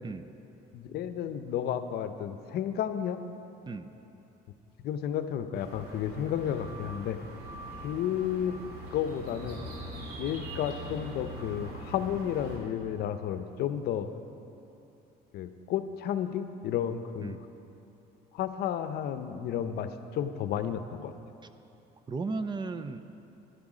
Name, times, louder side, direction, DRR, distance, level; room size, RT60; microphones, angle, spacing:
voice 1, 0.7-3.2 4.8-7.2 7.8-8.6 8.9-9.6 10.1-14.1 15.3-17.4 18.3-21.1, left 9 dB, 70° left, 10 dB, 0.7 m, -32 dB
sound 1, 5.5-12.6, equal, 70° right, 2.6 m, -42 dB
voice 2, 22.1-23.0, right 4 dB, 25° right, 10 dB, 0.5 m, -35 dB
11.5 x 11.5 x 4.9 m, 2.9 s
cardioid pair, 110°, 17 cm